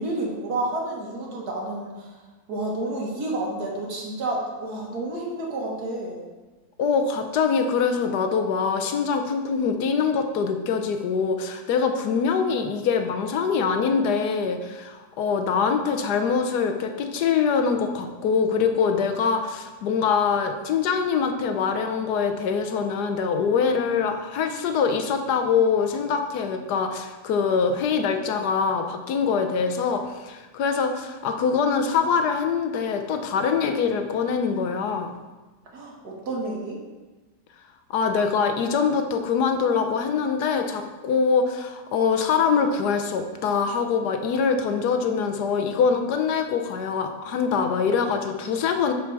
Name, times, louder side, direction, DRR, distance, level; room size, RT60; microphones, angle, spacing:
voice 1, 0.0-2.2 2.5-6.2 35.7-36.8, right 2 dB, 65° right, -2 dB, 2.0 m, -30 dB
voice 2, 6.8-35.1 37.9-48.9, left 5 dB, 70° left, 6 dB, 1.2 m, -24 dB
6.5 x 6.4 x 4.7 m, 1.2 s
omnidirectional pair, 1.9 m